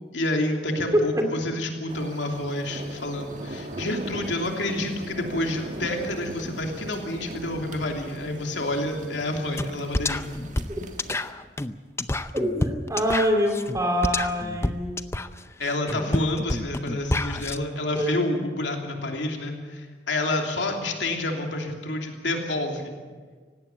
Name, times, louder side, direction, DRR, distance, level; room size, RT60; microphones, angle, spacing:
voice 1, 0.1-10.2 15.6-22.9, left 1 dB, 85° left, 2 dB, 3.0 m, -29 dB
voice 2, 0.9-1.3 12.3-15.1 16.0-16.1 17.9-18.5, equal, 20° right, 4 dB, 2.4 m, -25 dB
sound 1, 1.9-11.3, right 1 dB, 45° right, 1.7 m, -39 dB
sound 2, 9.6-9.7 9.9-17.6, left 2 dB, 15° left, 0.6 m, -28 dB
18.5 x 16.5 x 8.9 m, 1.5 s
head